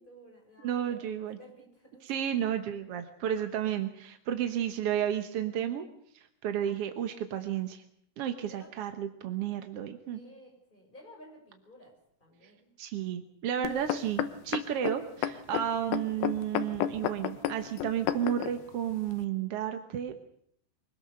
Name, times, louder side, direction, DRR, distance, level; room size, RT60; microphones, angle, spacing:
voice 1, 0.0-2.1 6.5-6.8 8.5-8.7 10.1-12.7, equal, 10° left, 1 dB, 6.2 m, -54 dB
voice 2, 0.6-1.4 2.0-5.9 6.1-7.8 8.2-10.2 12.8-20.1, right 10 dB, 60° right, 7 dB, 1.6 m, -32 dB
sound 1, 13.6-18.5 19.2-19.3, left 11 dB, 85° left, 2.9 m, -31 dB
24.0 x 19.5 x 6.6 m, 0.68 s
omnidirectional pair, 4.1 m